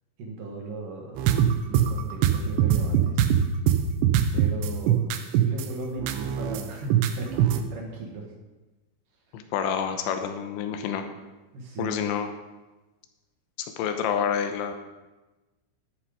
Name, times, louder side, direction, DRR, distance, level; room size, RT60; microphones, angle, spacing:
voice 1, 0.2-1.3 1.6-3.2 4.3-8.2 11.5-12.0, right 2 dB, 60° right, 0 dB, 2.3 m, -37 dB
sound 1, 1.2-5.6 6.0-6.6 6.9-7.6, right 10 dB, 80° right, 2.7 m, -21 dB
voice 2, 9.3-11.0 11.8-12.3 13.6-14.7, left 8 dB, 80° left, 7 dB, 2.9 m, -28 dB
11.5 x 10.5 x 5.0 m, 1.1 s
omnidirectional pair, 6.0 m